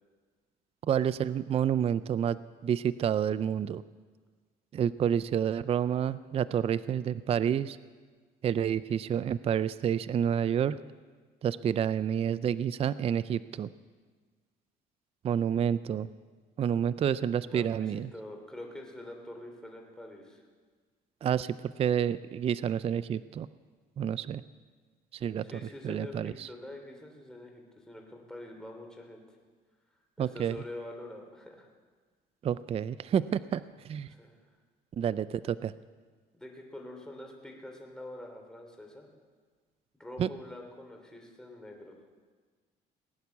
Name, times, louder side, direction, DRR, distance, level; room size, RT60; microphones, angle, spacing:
voice 1, 0.9-3.8 4.7-7.8 8.4-10.8 11.4-13.7 15.2-16.1 16.6-18.1 21.2-23.5 24.0-24.4 25.1-25.4 25.8-26.5 30.2-30.6 32.4-34.1 35.0-35.7 40.2-40.3, right 9 dB, 35° right, 16 dB, 0.4 m, -29 dB
voice 2, 17.4-20.4 25.4-29.2 30.2-31.7 34.1-34.5 36.3-39.1 40.0-41.9, left 1 dB, 5° left, 1 dB, 3.2 m, -45 dB
19.5 x 9.4 x 7.2 m, 1.5 s
cardioid pair, 110°, 17 cm